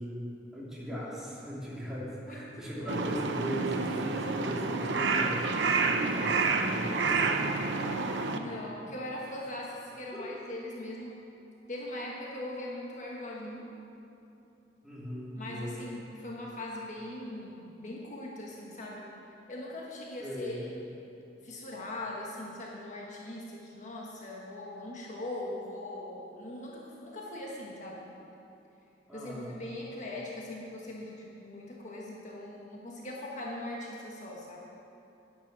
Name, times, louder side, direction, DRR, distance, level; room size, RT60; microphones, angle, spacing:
voice 1, 0.0-7.5 10.1-10.4 14.8-15.9 20.2-20.6 29.1-29.5, equal, 5° right, -8 dB, 2.9 m, -38 dB
voice 2, 2.3-2.9 8.3-11.2 11.7-13.7 15.4-19.1 19.5-20.7 21.4-28.1 29.1-34.7, left 1 dB, 45° left, -3 dB, 1.3 m, -40 dB
Crow, 2.9-8.4, right 4 dB, 75° right, 0.8 m, -29 dB
11.0 x 10.0 x 6.1 m, 2.9 s
head